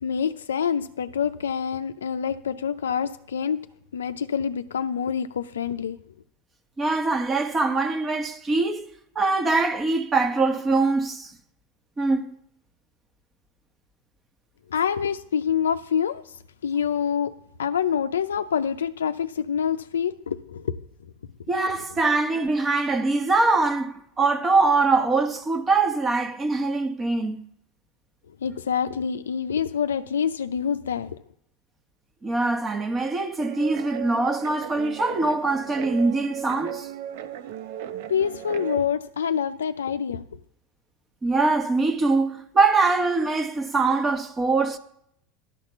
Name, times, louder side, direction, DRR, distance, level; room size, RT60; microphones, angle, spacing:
voice 1, 0.0-3.6 3.9-6.0 14.7-16.2 16.6-17.3 17.6-20.7 28.4-31.1 38.1-40.2, left 7 dB, 85° left, 0.4 m, -26 dB
voice 2, 6.8-8.9 9.1-11.3 12.0-12.3 21.5-27.4 32.2-36.9 41.2-44.8, right 3 dB, 25° right, 1.2 m, -23 dB
Guitar, 33.4-38.8, right 10 dB, 65° right, 0.8 m, -36 dB
11.0 x 4.3 x 6.9 m
hypercardioid pair, 90°, 0 cm